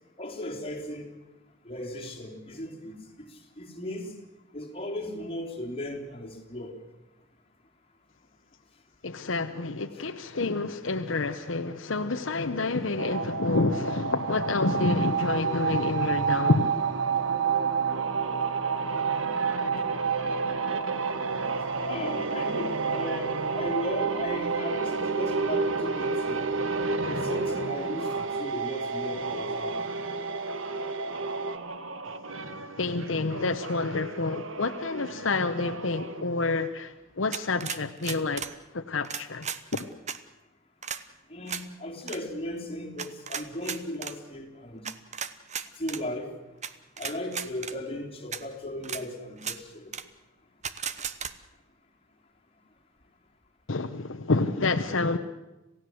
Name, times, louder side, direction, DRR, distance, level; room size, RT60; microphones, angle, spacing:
voice 1, 0.2-1.1 1.6-3.3 3.6-4.1 4.5-6.8 21.9-26.4 27.0-29.7 41.3-44.8 45.8-46.3 47.0-49.9, left 1 dB, 30° left, -1 dB, 3.6 m, -36 dB
voice 2, 9.0-16.7 32.8-38.4 38.7-39.5 39.7-39.9 53.7-55.2, left 3 dB, 70° left, 7 dB, 1.0 m, -28 dB
sound 1, 13.0-31.6, right 5 dB, 75° right, 1.5 m, -30 dB
sound 2, 16.7-28.4 29.1-36.2, right 3 dB, 90° right, 1.6 m, -35 dB
sound 3, 37.3-38.5 39.0-40.2 40.8-41.0 41.5-41.6 42.0-42.2 43.0-44.1 44.8-46.0 46.6-46.7 47.0-47.7 48.3-48.4 48.8-49.0 49.4-49.6 49.9-50.0 50.6-51.3, right 7 dB, 35° right, 1.1 m, -35 dB
27.5 x 16.5 x 7.9 m, 1.0 s
head